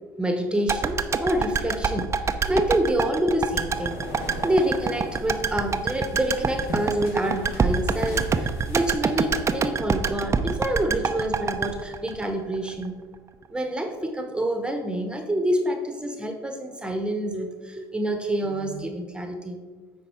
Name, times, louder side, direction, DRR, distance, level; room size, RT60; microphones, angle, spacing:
voice 1, 0.1-2.1 2.4-4.0 4.4-12.9 13.5-19.6, right 1 dB, 10° right, 5 dB, 1.1 m, -27 dB
sound 1, 0.7-12.9 13.1-13.2, right 5 dB, 30° right, 0.6 m, -26 dB
sound 2, 3.7-9.5, left 1 dB, 75° left, 1.7 m, -40 dB
9.6 x 4.1 x 4.5 m, 1.4 s
hypercardioid pair, 70°, 10 cm